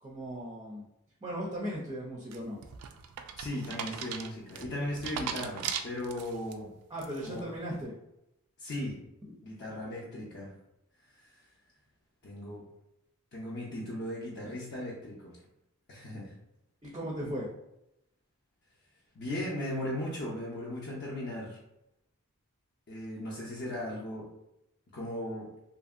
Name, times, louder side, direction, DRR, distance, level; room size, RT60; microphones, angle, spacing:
voice 1, 0.0-0.9 1.2-2.6 6.9-7.9 9.3-9.4 16.8-17.5, equal, 20° right, -3 dB, 0.4 m, -37 dB
sound 1, 2.3-6.5 7.0-7.4, right 7 dB, 85° right, 0.3 m, -38 dB
voice 2, 3.4-6.7 7.2-7.4 8.6-9.0 9.4-10.5 11.2-11.4 12.2-12.6 13.3-15.4 15.9-16.3 19.1-21.6 22.9-24.3 24.9-25.5, left 1 dB, 50° left, -5 dB, 0.5 m, -37 dB
2.8 x 2.6 x 2.4 m, 0.85 s
head